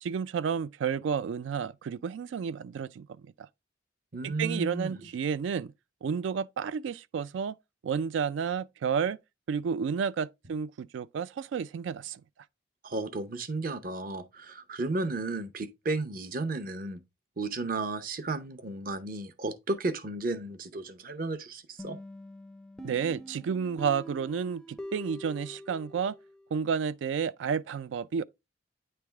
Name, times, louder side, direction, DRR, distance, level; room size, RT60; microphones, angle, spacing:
voice 1, 0.0-3.1 3.4-3.5 4.2-5.7 6.0-7.5 7.8-9.2 9.5-12.2 22.8-26.2 26.5-28.2, right 6 dB, 80° right, 0.3 m, -31 dB
voice 2, 4.1-5.0 12.8-17.0 17.4-22.0, right 2 dB, 50° right, 0.7 m, -33 dB
sound 1, 21.8-26.5, equal, 5° left, 0.4 m, -45 dB
9.2 x 3.4 x 3.4 m
head